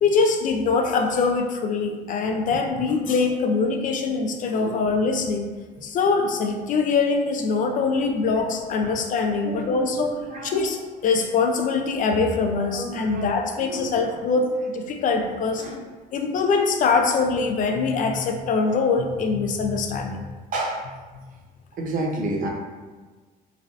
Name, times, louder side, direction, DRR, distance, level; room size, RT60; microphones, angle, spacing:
voice 1, 0.0-5.5 5.8-15.7 16.1-20.3, left 4 dB, 50° left, 5 dB, 0.4 m, -23 dB
voice 2, 9.4-10.8 12.6-14.1 15.6-15.8 20.5-20.9 21.8-22.5, right 2 dB, 50° right, 0 dB, 0.6 m, -31 dB
3.2 x 2.5 x 2.4 m, 1.4 s
cardioid pair, 110°, 17 cm